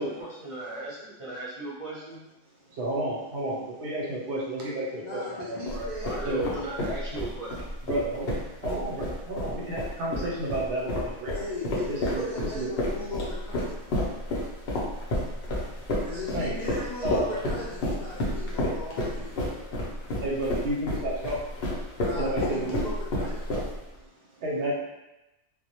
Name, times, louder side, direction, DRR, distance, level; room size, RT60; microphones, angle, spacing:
voice 1, 0.0-2.2 6.0-7.5, right 1 dB, 35° right, -8 dB, 0.6 m, -36 dB
voice 2, 2.7-5.9 6.2-6.5 7.8-11.3 11.9-12.7 16.3-16.6 17.0-17.4 19.8-21.5 22.2-22.8 23.8-24.7, right 1 dB, 70° right, -4 dB, 0.8 m, -31 dB
voice 3, 5.0-6.2 11.3-14.0 16.0-19.8 21.9-23.6, left 2 dB, 75° left, -7 dB, 0.4 m, -38 dB
sound 1, 5.7-24.0, left 1 dB, 60° left, 0.7 m, -31 dB
2.2 x 2.0 x 2.8 m, 0.95 s
omnidirectional pair, 1.3 m